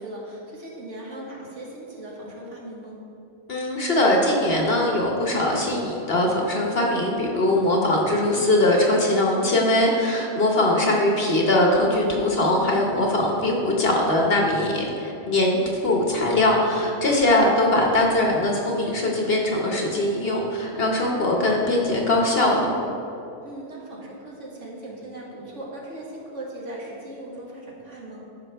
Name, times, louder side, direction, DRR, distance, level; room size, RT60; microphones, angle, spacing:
voice 1, 0.0-3.0 23.4-28.3, right 1 dB, 60° right, -3 dB, 1.8 m, -38 dB
voice 2, 3.5-22.7, left 1 dB, 50° left, -1 dB, 1.1 m, -21 dB
13.0 x 5.7 x 3.4 m, 2.8 s
omnidirectional pair, 1.5 m